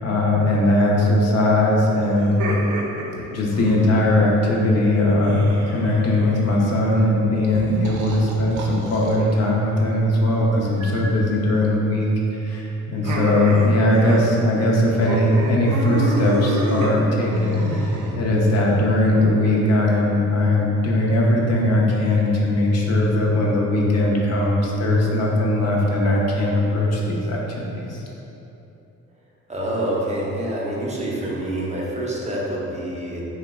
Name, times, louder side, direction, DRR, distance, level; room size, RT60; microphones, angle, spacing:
voice 1, 0.0-2.4 3.3-28.0, left 1 dB, 55° left, -3 dB, 0.6 m, -19 dB
sound 1, 2.2-4.2 5.2-6.6 7.5-9.2 10.8-11.2 13.0-14.3 14.6-14.7 15.0-18.6, right 1 dB, 85° right, 0.5 m, -29 dB
voice 2, 29.5-33.3, right 1 dB, 25° right, -5 dB, 0.5 m, -26 dB
2.7 x 2.1 x 3.5 m, 3.0 s
cardioid pair, 90°, 30 cm